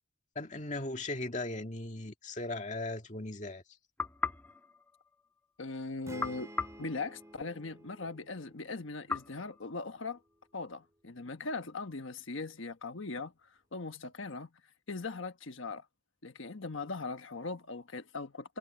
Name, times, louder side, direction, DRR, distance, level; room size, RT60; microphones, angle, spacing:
voice 1, 0.4-3.6, left 2 dB, 40° left, 2.2 m, -38 dB
sound 1, 4.0-5.6 6.2-7.8 9.1-10.5, left 4 dB, 10° left, 1.3 m, -40 dB
voice 2, 5.6-6.5 6.8-10.2 10.5-14.5 14.9-15.8 16.2-18.6, left 3 dB, 85° left, 1.3 m, -40 dB
sound 2, 6.0-9.8, right 1 dB, 15° right, 3.6 m, -52 dB
head